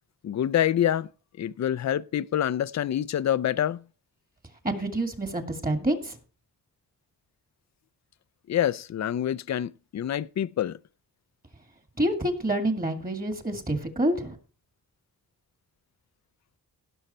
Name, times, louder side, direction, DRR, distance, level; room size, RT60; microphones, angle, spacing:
voice 1, 0.2-1.1 1.4-3.8 8.5-10.8, left 10 dB, 50° left, 0.5 m, -26 dB
voice 2, 4.6-6.2 12.0-14.4, right 1 dB, 25° right, 2.3 m, -27 dB
17.0 x 6.4 x 4.3 m
wide cardioid pair, 100°, 36 cm